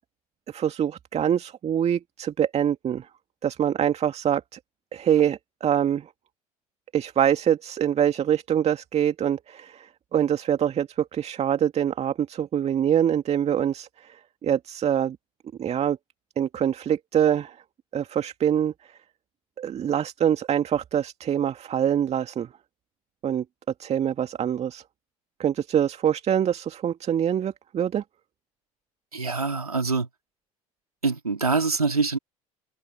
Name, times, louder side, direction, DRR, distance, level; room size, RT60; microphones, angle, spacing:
voice 1, 0.5-3.1 3.4-4.6 4.9-6.1 6.9-14.2 14.4-15.2 15.6-16.0 16.4-17.6 17.9-18.7 19.6-22.5 23.2-23.4 23.8-24.8 25.4-28.0, right 9 dB, 35° right, 2.3 m, -24 dB
voice 2, 29.1-30.1 31.0-32.2, right 4 dB, 85° right, 3.5 m, -24 dB
figure-of-eight pair, 65°, 18 cm